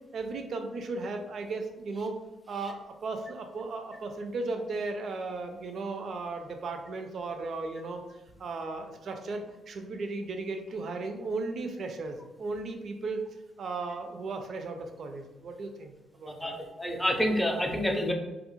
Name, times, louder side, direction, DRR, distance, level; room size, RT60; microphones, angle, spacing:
voice 1, 0.1-2.2 2.5-8.0 8.4-13.3 13.6-16.5, right 3 dB, 55° right, 5 dB, 0.4 m, -36 dB
voice 2, 16.3-18.1, equal, 5° left, 2 dB, 0.4 m, -28 dB
2.3 x 2.1 x 3.0 m, 1.0 s
cardioid pair, 90°, 0 cm